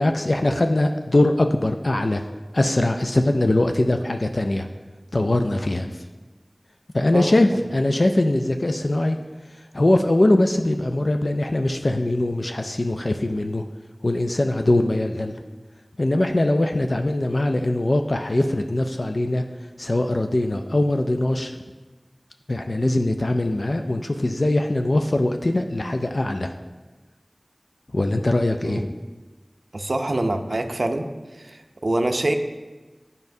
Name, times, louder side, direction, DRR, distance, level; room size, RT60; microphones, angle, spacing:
voice 1, 0.0-2.2 2.5-4.7 5.1-6.0 6.9-9.2 9.5-13.6 14.0-15.3 16.0-19.4 19.8-21.5 22.5-26.5 27.9-28.9, left 1 dB, 70° left, 5 dB, 0.3 m, -21 dB
voice 2, 29.7-31.1 31.3-32.3, right 1 dB, 85° right, 6 dB, 0.4 m, -25 dB
9.2 x 5.4 x 2.6 m, 1.2 s
wide cardioid pair, 45°, 0 cm